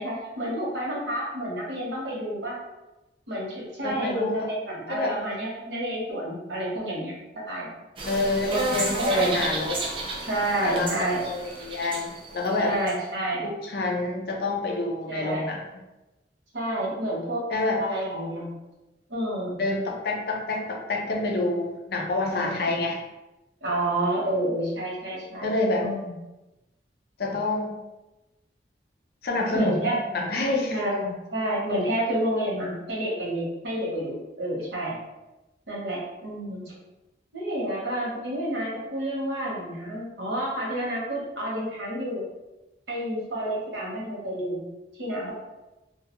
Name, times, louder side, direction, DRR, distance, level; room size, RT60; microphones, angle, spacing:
voice 1, 0.0-2.6 3.3-7.1 7.5-7.7 8.5-9.4 10.2-11.3 12.6-13.5 15.1-15.5 16.5-17.4 17.8-18.6 19.1-19.6 22.3-22.7 23.6-25.5 25.8-26.1 29.5-30.0 30.7-35.0 35.7-36.7 37.3-42.2 42.9-44.6 45.0-45.3, right 1 dB, 85° right, -4 dB, 0.9 m, -29 dB
voice 2, 3.8-4.5 4.9-5.1 8.0-9.8 10.6-10.9 11.2-12.7 13.4-15.6 17.5-17.8 19.6-23.0 25.4-25.9 27.2-27.8 29.2-30.8, left 2 dB, 60° left, 0 dB, 0.5 m, -27 dB
sound 1, 8.0-12.9, right 2 dB, 30° right, 0.3 m, -32 dB
2.3 x 2.2 x 2.8 m, 1.0 s
head